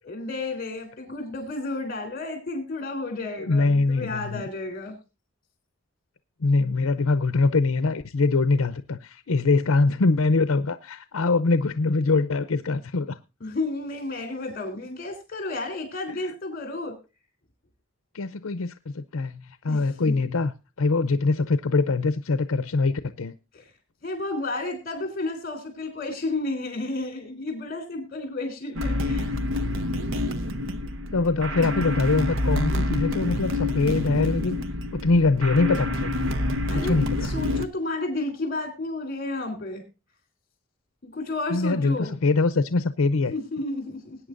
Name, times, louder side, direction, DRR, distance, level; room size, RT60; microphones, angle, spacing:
voice 1, 0.0-5.0 13.4-16.9 19.7-20.1 23.5-23.7 24.0-29.4 36.7-36.9 37.2-39.8 41.0-42.1 43.3-44.2, left 2 dB, 45° left, 3.5 m, -32 dB
voice 2, 3.4-4.4 6.4-13.2 18.1-20.5 20.8-23.4 31.1-34.6 34.9-36.1 36.7-37.3 41.5-43.3, left 3 dB, 80° left, 0.7 m, -23 dB
sound 1, 28.8-37.7, left 1 dB, 65° right, 0.9 m, -27 dB
20.0 x 9.2 x 2.6 m
head